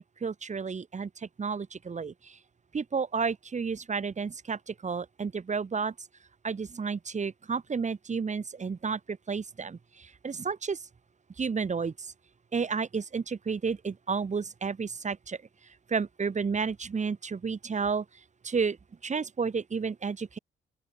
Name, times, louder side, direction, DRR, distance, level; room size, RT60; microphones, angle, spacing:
voice 1, 0.0-2.4 2.7-5.9 6.4-10.8 11.4-12.1 12.5-15.4 15.9-18.0 18.4-18.8 19.0-20.4, right 5 dB, 35° right, 5.8 m, -31 dB
open air
cardioid pair, 90°, 20 cm